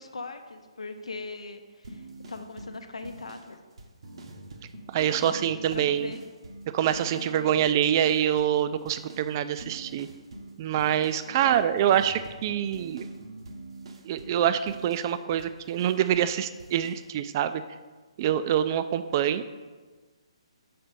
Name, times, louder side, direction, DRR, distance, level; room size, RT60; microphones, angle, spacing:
voice 1, 0.0-3.6 5.0-6.2 7.1-7.6 11.3-12.0, left 3 dB, 80° left, 7 dB, 0.7 m, -40 dB
sound 1, 1.8-7.4 7.6-8.6 8.9-16.3 16.6-17.1, right 2 dB, 60° right, 0.7 m, -45 dB
voice 2, 4.9-6.1 6.7-10.1 10.6-13.1 14.0-17.6 18.2-19.5, right 10 dB, 35° right, 12 dB, 0.3 m, -25 dB
5.9 x 4.2 x 5.2 m, 1.3 s
figure-of-eight pair, 140°, 3 cm